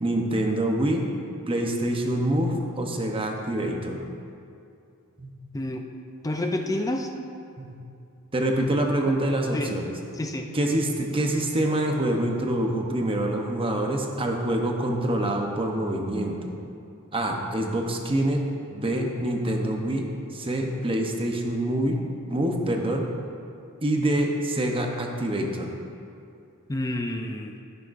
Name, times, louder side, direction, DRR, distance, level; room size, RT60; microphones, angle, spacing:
voice 1, 0.0-1.0 1.5-4.0 5.2-5.3 7.6-7.7 8.3-9.9 10.5-16.4 17.1-18.4 18.7-20.0 20.3-22.0 22.3-23.1 23.8-25.7, right 1 dB, 25° right, 2 dB, 0.8 m, -26 dB
voice 2, 6.2-7.1 9.5-9.7 10.2-10.5 26.7-27.5, left 1 dB, 15° left, 4 dB, 0.4 m, -28 dB
15.0 x 6.7 x 2.6 m, 2.5 s
head